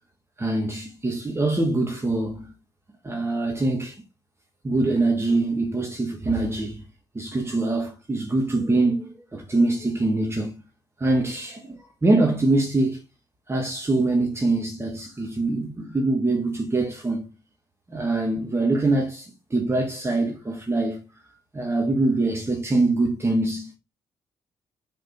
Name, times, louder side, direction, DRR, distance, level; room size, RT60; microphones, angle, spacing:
voice 1, 0.4-2.5 3.0-3.9 4.6-6.8 7.1-10.5 11.0-13.0 13.5-17.3 17.9-21.0 21.5-23.7, right 2 dB, 25° right, 1.7 m, -24 dB
5.3 x 4.2 x 4.3 m
hypercardioid pair, 50°, 10 cm